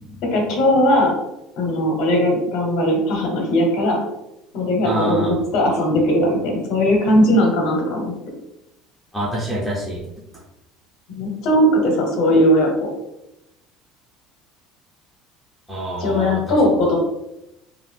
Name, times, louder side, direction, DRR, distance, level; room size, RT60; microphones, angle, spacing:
voice 1, 0.3-1.1 1.6-4.0 4.5-8.1 11.1-12.9 16.0-17.0, equal, 55° left, 0 dB, 0.8 m, -18 dB
voice 2, 4.8-5.3 9.1-10.0 15.7-16.4, equal, ahead, -7 dB, 0.6 m, -26 dB
2.5 x 2.4 x 3.3 m, 0.88 s
cardioid pair, 145°, 0 cm